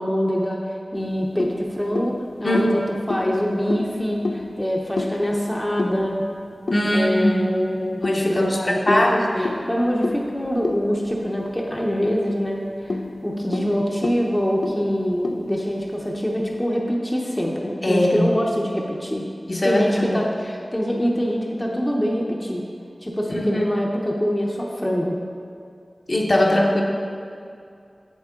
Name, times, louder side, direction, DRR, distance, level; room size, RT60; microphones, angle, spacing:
voice 1, 0.0-2.8 3.1-6.2 6.7-8.0 8.3-9.1 9.3-19.2 19.6-22.6 23.0-25.2, equal, 15° left, -1 dB, 0.8 m, -24 dB
sound 1, 0.9-7.4 8.0-11.9 12.2-12.3 12.7-16.3, left 2 dB, 70° left, 0.4 m, -32 dB
voice 2, 2.4-2.8 6.7-7.4 8.0-9.5 17.8-18.3 19.5-20.2 23.3-23.6 26.1-26.8, left 1 dB, 45° left, -1 dB, 0.9 m, -20 dB
8.2 x 7.3 x 3.7 m, 2.4 s
wide cardioid pair, 75°, 0 cm